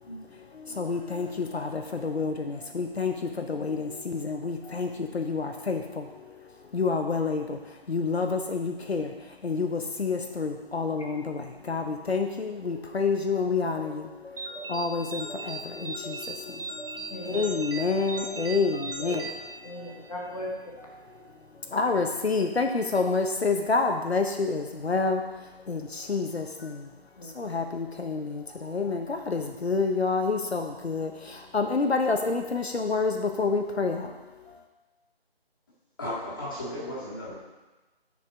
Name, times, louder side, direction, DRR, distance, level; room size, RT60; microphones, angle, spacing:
voice 1, 0.5-6.2 6.7-19.2 21.6-26.9 27.3-34.2 34.5-34.6, left 4 dB, 85° left, 4 dB, 0.8 m, -29 dB
sound 1, 14.4-20.1, right 3 dB, 60° right, 0.8 m, -38 dB
voice 2, 17.1-17.5 19.0-19.2 19.6-20.7 27.2-27.3, equal, 35° left, -2 dB, 1.4 m, -38 dB
voice 3, 36.0-37.3, left 1 dB, 20° left, -8 dB, 1.6 m, -34 dB
6.4 x 5.3 x 4.6 m, 1.1 s
figure-of-eight pair, 165°, 31 cm